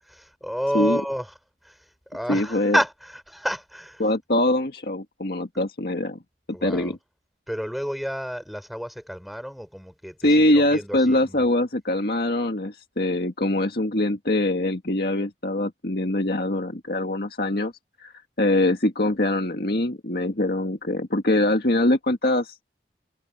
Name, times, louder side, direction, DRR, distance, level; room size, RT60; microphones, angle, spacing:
voice 1, 0.0-1.3 1.6-4.0 6.5-7.0 7.5-11.5, equal, ahead, 4.1 m, -30 dB
voice 2, 2.3-2.8 4.0-6.2 6.5-7.0 10.2-17.7 18.0-18.1 18.4-22.6, left 1 dB, 60° left, 2.0 m, -23 dB
head